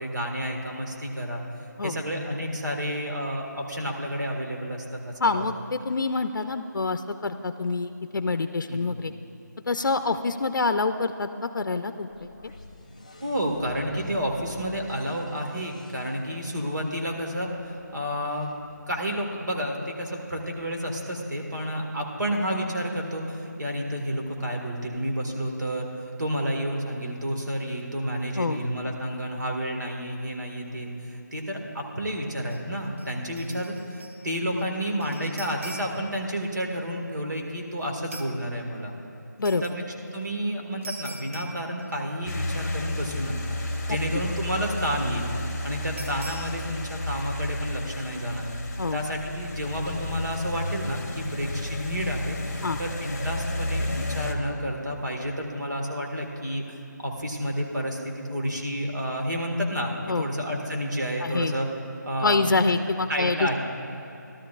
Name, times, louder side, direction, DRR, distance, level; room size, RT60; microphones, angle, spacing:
voice 1, 0.0-1.4 1.8-5.4 8.7-8.8 13.2-18.5 18.9-38.9 39.6-39.8 40.1-43.6 43.9-45.3 45.6-48.5 48.9-61.7 62.0-62.6 63.1-63.6, equal, 65° right, 1 dB, 1.7 m, -30 dB
voice 2, 5.2-9.1 9.7-12.1 28.4-28.6 39.4-39.6 43.9-44.0 48.8-49.0 52.6-52.8 60.1-60.3 61.2-61.5 62.2-63.6, left 3 dB, 80° left, 9 dB, 0.5 m, -26 dB
sound 1, 12.1-20.0, left 2 dB, 20° left, 0.4 m, -49 dB
sound 2, 32.5-32.7 33.0-34.3 34.5-36.2 38.1-38.4 39.4-39.8 40.8-42.3 42.5-42.6 43.0-43.7 46.0-46.7, right 2 dB, 40° right, 0.7 m, -43 dB
sound 3, 42.3-54.3, left 1 dB, 50° left, 1.0 m, -32 dB
15.0 x 12.5 x 2.4 m, 3.0 s
figure-of-eight pair, 175°, 10 cm